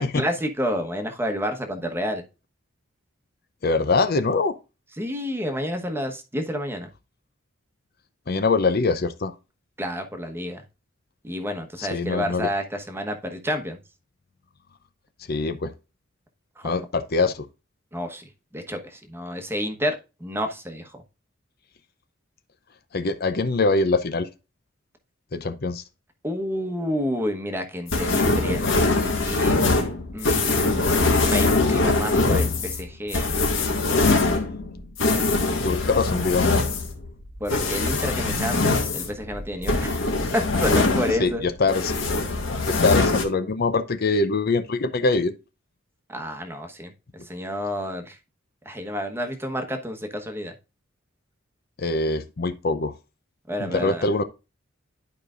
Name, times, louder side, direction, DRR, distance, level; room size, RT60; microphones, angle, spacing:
voice 1, 0.0-2.2 5.0-6.9 9.8-10.6 11.2-13.8 16.6-16.7 17.9-21.0 26.2-29.6 30.1-33.4 37.4-40.0 40.3-41.4 46.1-46.9 47.3-48.2 48.6-50.5 53.5-54.1, equal, 10° right, 1.1 m, -30 dB
voice 2, 3.6-4.5 8.3-9.3 11.8-12.5 15.3-15.7 16.6-17.5 22.9-24.3 25.3-25.8 35.6-36.5 41.2-41.9 42.7-45.3 51.8-52.9 53.6-54.2, left 3 dB, 50° left, 0.6 m, -23 dB
sound 1, 27.9-41.4 41.7-43.2, left 3 dB, 70° left, 1.9 m, -22 dB
11.5 x 4.9 x 2.5 m
head